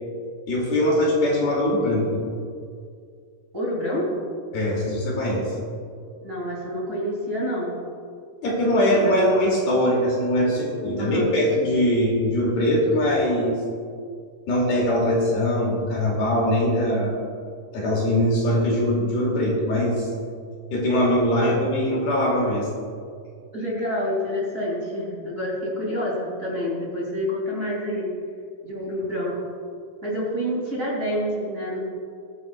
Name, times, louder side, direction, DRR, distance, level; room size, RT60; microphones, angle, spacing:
voice 1, 0.5-2.3 4.5-5.5 8.4-13.6 14.5-17.2 17.7-20.1 20.7-22.7, left 1 dB, 75° left, -3 dB, 4.4 m, -22 dB
voice 2, 3.5-4.2 6.2-7.8 8.7-9.1 11.0-11.3 21.4-21.5 23.5-28.1 28.6-29.4 30.0-31.8, equal, 25° right, -6 dB, 2.7 m, -28 dB
22.5 x 9.6 x 2.4 m, 2.2 s
omnidirectional pair, 4.3 m